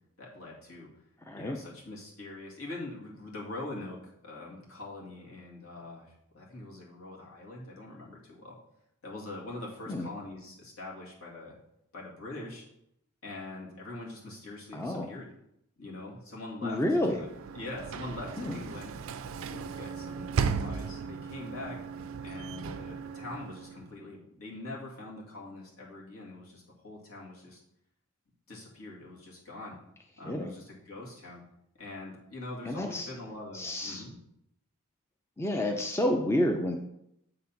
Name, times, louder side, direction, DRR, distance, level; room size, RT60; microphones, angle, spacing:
voice 1, 0.2-0.9 1.4-8.6 9.0-11.6 11.9-12.7 13.2-15.3 15.8-16.8 17.1-17.3 17.5-18.9 19.4-21.8 22.2-27.6 28.5-29.8 30.2-31.4 31.8-34.2, left 2 dB, 70° left, -3 dB, 2.2 m, -43 dB
voice 2, 1.3-1.6 9.9-10.1 14.7-15.1 16.6-17.3 18.4-18.6 30.2-30.5 32.7-33.1 33.5-34.0 35.4-36.8, left 1 dB, 10° left, 3 dB, 0.5 m, -29 dB
Sliding door / Slam, 16.9-24.0, right 5 dB, 60° right, 0.4 m, -36 dB
7.5 x 4.0 x 5.7 m, 0.78 s
head